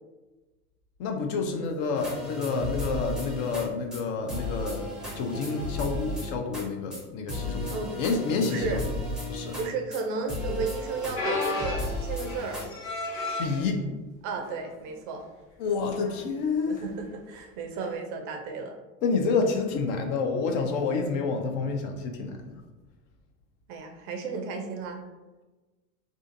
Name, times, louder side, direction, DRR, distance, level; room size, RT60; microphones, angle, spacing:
voice 1, 1.0-4.9 5.2-8.9 9.3-9.6 13.4-13.8 15.6-16.8 19.0-22.5, left 4 dB, 50° left, 4 dB, 0.5 m, -29 dB
sound 1, 1.9-3.7 3.9-4.0 4.3-6.6 6.9-7.0 7.3-10.0 10.3-11.1 11.4-12.7, left 1 dB, ahead, 0.7 m, -34 dB
voice 2, 8.4-8.8 9.6-12.6 14.2-15.2 16.7-18.8 23.7-25.0, right 4 dB, 45° right, 4 dB, 0.4 m, -33 dB
sound 2, 11.1-13.6 14.4-14.6 15.0-15.1 16.0-16.2 17.8-17.9, left 3 dB, 30° left, 1.1 m, -33 dB
2.4 x 2.4 x 2.5 m, 1.2 s
hypercardioid pair, 90°, 46 cm